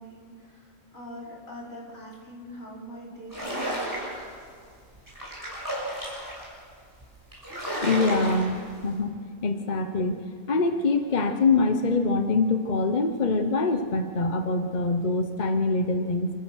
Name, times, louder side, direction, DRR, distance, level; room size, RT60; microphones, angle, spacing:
voice 1, 0.0-3.8, equal, 65° left, -4 dB, 5.1 m, -43 dB
sound 1, 3.3-4.3 4.9-6.5 7.0-7.1 7.3-8.7, right 1 dB, 15° right, 7.0 m, -32 dB
voice 2, 7.8-8.6 8.8-9.1 9.4-10.2 10.5-16.3, left 3 dB, 35° left, 7 dB, 1.0 m, -24 dB
28.5 x 15.0 x 6.4 m, 2.1 s
omnidirectional pair, 1.5 m